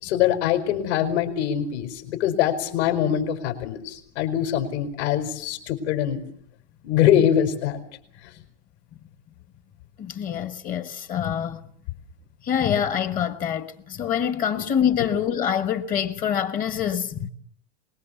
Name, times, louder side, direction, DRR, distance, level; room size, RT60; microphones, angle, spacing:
voice 1, 0.0-6.2 6.8-7.8 14.5-14.6, left 10 dB, 65° left, 5.3 m, -23 dB
voice 2, 10.0-11.6 12.4-17.3, left 9 dB, 25° left, 1.3 m, -25 dB
24.5 x 21.5 x 7.0 m
supercardioid pair, 175°, 36 cm